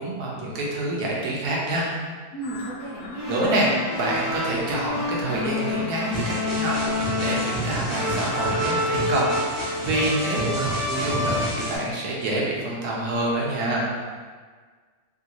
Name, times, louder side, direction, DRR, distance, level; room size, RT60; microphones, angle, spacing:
voice 1, 0.0-1.9 3.3-6.7 7.2-13.9, right 1 dB, 90° right, -4 dB, 1.3 m, -27 dB
voice 2, 2.3-3.5, right 2 dB, 55° left, -9 dB, 0.5 m, -34 dB
sound 1, 2.4-8.8, left 3 dB, 85° left, 1.1 m, -41 dB
sound 2, 3.2-11.9, left 2 dB, 65° right, 0.4 m, -28 dB
sound 3, 6.1-11.8, equal, 45° right, 1.0 m, -31 dB
3.1 x 2.5 x 2.9 m, 1.5 s
omnidirectional pair, 1.6 m